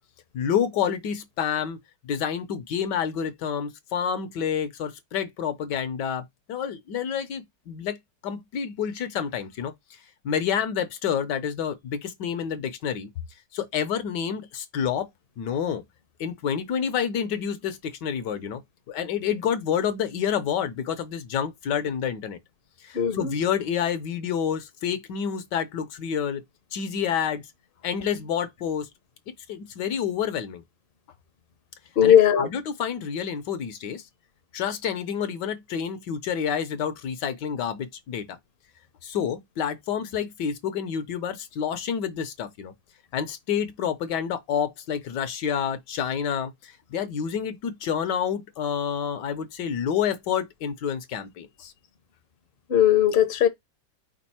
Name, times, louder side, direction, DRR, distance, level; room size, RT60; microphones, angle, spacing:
voice 1, 0.3-1.8 2.0-8.0 8.2-10.0 10.2-13.1 13.5-15.1 15.4-15.8 16.2-18.6 18.9-22.4 22.8-26.4 26.7-27.4 27.8-28.9 29.5-30.6 32.0-34.0 34.5-38.4 39.0-42.7 43.1-51.7, left 8 dB, 70° left, 1.3 m, -28 dB
voice 2, 22.9-23.3 32.0-32.5 52.7-53.5, left 10 dB, 45° left, 0.7 m, -18 dB
5.2 x 2.4 x 4.2 m
omnidirectional pair, 2.0 m